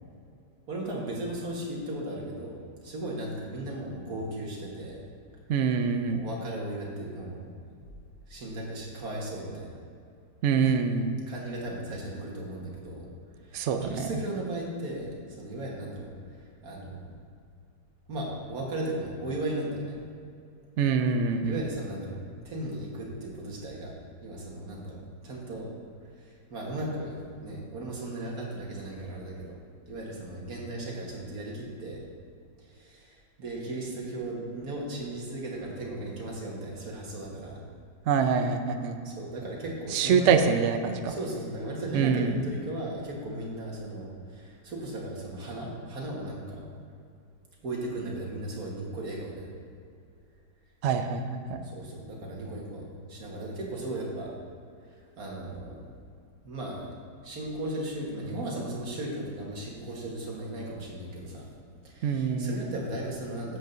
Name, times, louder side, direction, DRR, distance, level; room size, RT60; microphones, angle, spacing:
voice 1, 0.7-2.6 2.8-5.0 6.1-7.6 8.3-9.7 11.3-13.1 13.4-17.2 18.1-20.0 21.5-22.2 22.4-23.9 24.2-25.7 26.2-29.6 29.9-32.0 32.6-37.6 39.0-40.4 41.1-46.6 47.6-49.5 51.6-54.3 55.2-55.9 56.4-61.5 61.8-63.6, right 1 dB, 55° right, -3 dB, 1.9 m, -36 dB
voice 2, 5.5-6.2 10.4-11.2 13.5-14.1 20.8-21.6 38.1-39.0 39.9-41.2 41.9-42.4 50.8-51.6 62.0-62.7, right 6 dB, 80° right, 7 dB, 0.6 m, -25 dB
13.0 x 7.8 x 2.7 m, 2.4 s
omnidirectional pair, 1.9 m